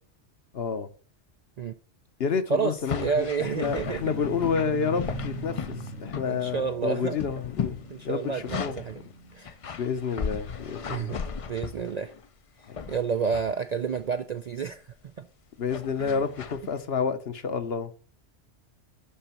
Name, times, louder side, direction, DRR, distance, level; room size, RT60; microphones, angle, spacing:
voice 1, 0.5-0.9 2.2-7.8 8.0-8.7 9.8-11.2 12.7-12.8 15.6-17.9, left 6 dB, 60° left, 1.1 m, -29 dB
voice 2, 2.5-4.1 6.3-7.2 7.9-9.0 9.3-9.6 10.9-11.2 11.5-12.1 12.6-15.3 16.0-16.2, right 6 dB, 55° right, 0.4 m, -30 dB
sound 1, 2.8-6.7 6.9-9.0 9.4-12.3 12.7-13.5 14.0-14.3 15.7-16.7, left 6 dB, 45° left, 0.4 m, -36 dB
sound 2, 3.6-9.8, equal, 90° left, 1.8 m, -40 dB
11.5 x 3.9 x 5.7 m
omnidirectional pair, 1.2 m